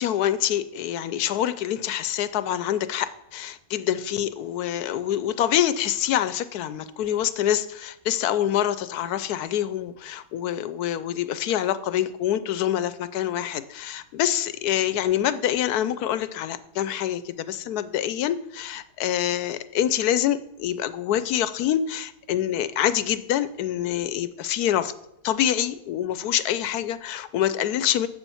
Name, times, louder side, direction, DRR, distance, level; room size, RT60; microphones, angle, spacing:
voice 1, 0.0-24.9 25.2-28.1, left 11 dB, 90° left, 14 dB, 1.2 m, -26 dB
8.2 x 7.1 x 7.1 m, 0.80 s
omnidirectional pair, 1.6 m